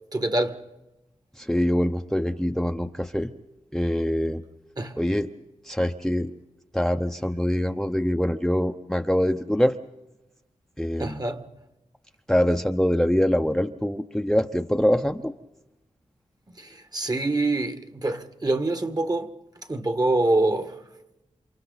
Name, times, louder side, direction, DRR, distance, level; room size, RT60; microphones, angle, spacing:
voice 1, 0.1-0.6 4.8-5.0 11.0-11.4 16.6-19.3 19.7-20.8, right 2 dB, 30° right, 1.7 m, -25 dB
voice 2, 1.4-3.3 3.7-4.4 5.0-5.3 5.6-6.3 6.7-9.8 10.8-11.2 12.3-15.3, equal, 5° left, 0.8 m, -24 dB
29.5 x 27.5 x 4.1 m
wide cardioid pair, 70°, 12 cm